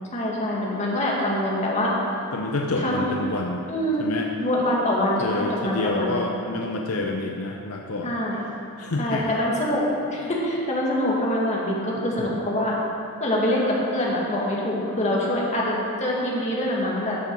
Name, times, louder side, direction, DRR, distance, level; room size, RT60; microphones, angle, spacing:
voice 1, 0.1-1.9 2.8-3.1 3.7-4.1 4.4-6.2 8.0-8.4 9.0-12.8 13.2-17.2, left 1 dB, 30° left, -4 dB, 1.9 m, -25 dB
voice 2, 2.3-3.6 4.0-4.3 5.2-8.2 8.8-9.3, left 2 dB, 75° left, 1 dB, 0.7 m, -28 dB
12.5 x 6.9 x 4.6 m, 2.6 s
head